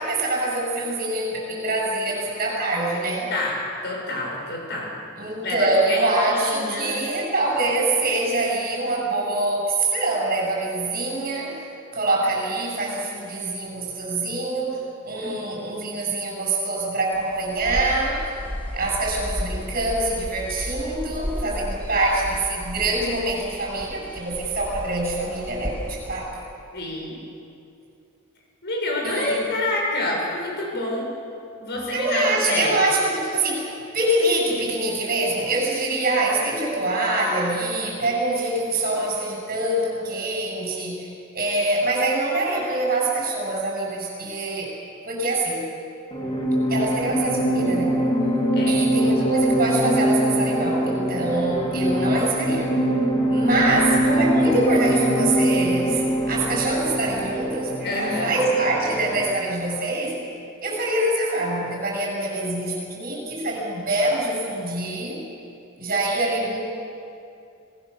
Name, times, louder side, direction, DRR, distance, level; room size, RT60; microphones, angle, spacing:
voice 1, 0.0-3.3 5.2-11.6 11.9-14.8 15.0-18.2 18.7-26.3 29.0-29.4 31.9-41.1 41.3-44.7 45.1-45.7 46.7-48.0 48.7-52.7 53.3-60.2 60.6-65.2 65.8-66.6, right 2 dB, 40° right, -1 dB, 7.8 m, -25 dB
voice 2, 3.3-5.0 5.4-7.0 15.2-15.4 26.7-27.2 28.6-31.1 31.6-32.8 48.5-48.8 53.5-53.6 57.8-58.4, left 2 dB, 50° left, -1 dB, 7.2 m, -28 dB
sound 1, 17.1-26.1, equal, 10° left, 3.2 m, -34 dB
sound 2, 46.1-59.4, equal, 25° left, 2.5 m, -23 dB
27.0 x 20.0 x 7.2 m, 2.6 s
head